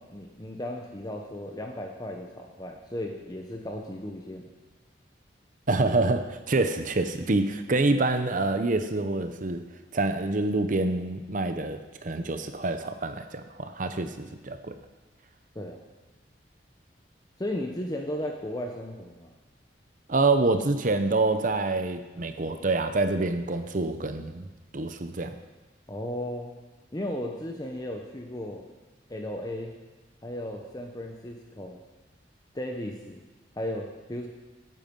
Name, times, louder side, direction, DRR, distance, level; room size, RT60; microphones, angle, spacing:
voice 1, 0.0-4.4 15.5-15.8 17.4-19.3 25.9-26.5 26.9-28.6 29.1-29.8 30.2-31.8 32.5-33.2 33.6-34.3, left 1 dB, 20° left, 2 dB, 1.0 m, -35 dB
voice 2, 5.7-9.6 9.9-14.8 20.1-24.5 24.7-25.3, right 2 dB, 45° right, 9 dB, 0.8 m, -26 dB
17.0 x 9.3 x 5.4 m, 1.2 s
head